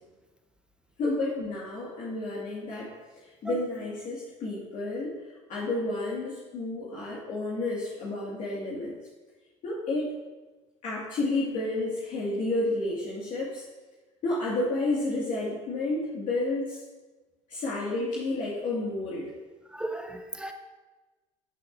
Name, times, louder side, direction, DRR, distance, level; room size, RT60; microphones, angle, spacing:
voice 1, 1.0-9.0 9.6-10.1 10.8-13.6 14.2-16.8 17.5-19.3, left 2 dB, 50° left, -6 dB, 2.1 m, -31 dB
voice 2, 19.7-20.5, right 1 dB, 5° right, 4 dB, 0.9 m, -35 dB
13.0 x 6.5 x 2.7 m, 1.2 s
hypercardioid pair, 75°, 16 cm